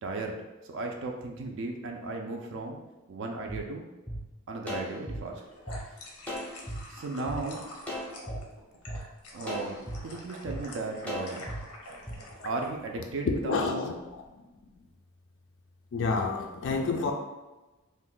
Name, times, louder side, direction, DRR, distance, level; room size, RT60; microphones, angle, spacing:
voice 1, 0.0-2.8 3.1-3.8 4.5-5.4 5.8-6.2 6.9-7.6 9.3-11.5 12.4-14.0, right 3 dB, 60° right, 2 dB, 0.3 m, -36 dB
sound 1, 3.5-3.6 4.1-4.2 4.7-5.8 6.3-6.8 7.3-7.4 7.9-8.4 8.9-9.0 9.5-10.0 10.5-10.6 11.1-11.6 12.1-12.2, equal, 5° left, 0.5 m, -36 dB
sound 2, 5.2-12.7, left 1 dB, 90° left, 0.7 m, -46 dB
voice 2, 13.5-13.9 15.9-17.1, left 4 dB, 55° left, 3 dB, 0.3 m, -28 dB
2.6 x 2.1 x 3.7 m, 1.1 s
head